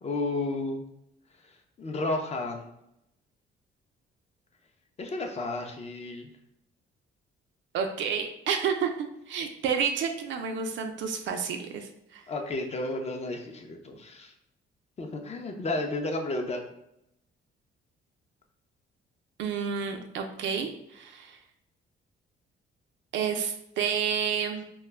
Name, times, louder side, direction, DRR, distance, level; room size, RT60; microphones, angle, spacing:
voice 1, 0.0-0.8 1.5-2.7 5.0-6.3 12.3-14.3 15.0-16.6, left 2 dB, 35° left, 3 dB, 0.5 m, -32 dB
voice 2, 7.7-12.2 19.4-21.4 23.1-24.6, right 6 dB, 70° right, 5 dB, 0.4 m, -30 dB
2.2 x 2.1 x 3.3 m, 0.80 s
cardioid pair, 90°, 20 cm